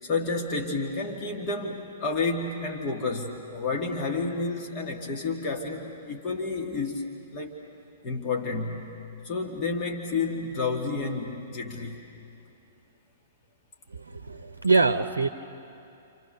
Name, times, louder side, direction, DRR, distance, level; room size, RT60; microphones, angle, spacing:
voice 1, 0.0-7.0 7.3-7.5 8.0-8.9 9.2-12.0, left 3 dB, 30° left, 1 dB, 2.4 m, -30 dB
voice 2, 13.9-15.3, right 3 dB, 75° right, 10 dB, 0.7 m, -24 dB
29.0 x 28.0 x 6.9 m, 2.7 s
figure-of-eight pair, 110°, 0 cm